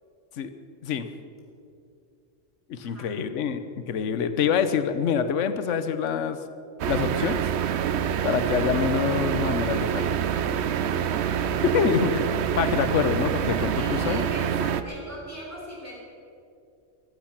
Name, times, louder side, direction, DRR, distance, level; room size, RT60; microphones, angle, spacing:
voice 1, 2.7-6.4 6.9-7.4 8.2-10.2 11.6-12.2 12.6-14.2, left 7 dB, 70° left, 10 dB, 1.2 m, -26 dB
sound 1, 6.8-14.8, right 8 dB, 60° right, 0.9 m, -26 dB
voice 2, 10.7-11.3 13.8-16.0, equal, 10° left, -4 dB, 4.0 m, -41 dB
15.0 x 14.5 x 5.9 m, 2.5 s
omnidirectional pair, 1.4 m